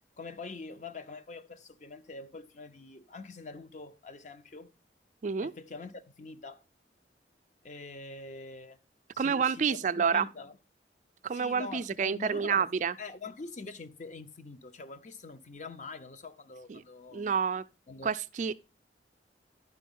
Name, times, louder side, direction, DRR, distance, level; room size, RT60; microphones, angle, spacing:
voice 1, 0.2-4.7 5.4-6.6 7.6-8.8 9.1-10.6 11.3-12.7 13.0-17.3 17.9-18.1, left 3 dB, 45° left, 0.7 m, -44 dB
voice 2, 9.2-10.3 11.2-12.9 16.7-16.8 17.1-17.6 18.0-18.6, right 6 dB, 45° right, 0.4 m, -29 dB
11.0 x 5.0 x 5.4 m
head